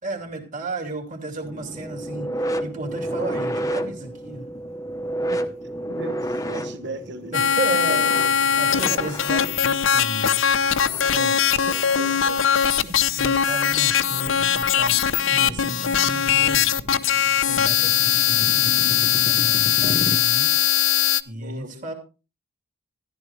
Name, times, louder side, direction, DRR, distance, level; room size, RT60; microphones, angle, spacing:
voice 1, 0.0-4.5 7.3-8.1 8.4-10.8 11.1-11.3 13.2-15.0 15.3-16.7 17.4-20.6 21.3-21.9, right 2 dB, 35° right, 2 dB, 2.7 m, -33 dB
sound 1, 1.4-12.4 13.7-13.9 14.8-14.9, right 1 dB, 15° left, 0.9 m, -31 dB
sound 2, 3.7-4.2 4.6-4.7 5.4-5.9 6.4-6.7 7.3-20.2, left 1 dB, 30° left, 1.1 m, -38 dB
voice 2, 5.9-8.0 8.7-9.1 10.9-13.0 13.4-13.6 21.3-21.9, right 2 dB, 55° right, 10 dB, 1.2 m, -37 dB
sound 3, 7.3-21.2, left 9 dB, 65° left, 0.6 m, -20 dB
14.0 x 12.0 x 3.3 m, 0.32 s
head